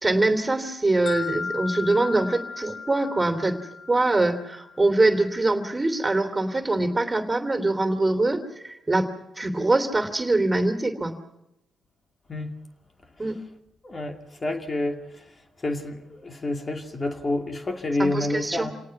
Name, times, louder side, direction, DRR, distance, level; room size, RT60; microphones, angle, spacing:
voice 1, 0.0-3.6 3.9-9.1 9.4-11.1 13.2-13.4 18.0-18.7, right 2 dB, 25° right, 3.1 m, -23 dB
sound 1, 1.1-5.0, left 5 dB, 65° left, 3.2 m, -36 dB
voice 2, 13.8-15.0 15.6-18.7, left 2 dB, 35° left, 2.6 m, -28 dB
28.0 x 18.5 x 6.0 m
supercardioid pair, 55°, 0 cm